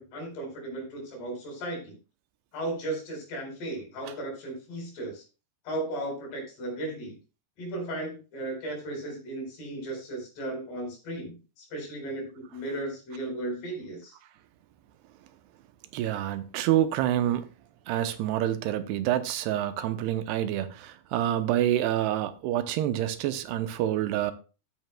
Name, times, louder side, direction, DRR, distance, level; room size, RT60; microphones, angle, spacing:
voice 1, 0.0-1.9 2.5-5.2 5.6-7.2 7.6-14.2, right 1 dB, 75° left, 6.3 m, -35 dB
voice 2, 15.9-17.5 17.9-24.3, right 12 dB, 80° right, 2.7 m, -27 dB
14.5 x 9.3 x 2.2 m
omnidirectional pair, 4.7 m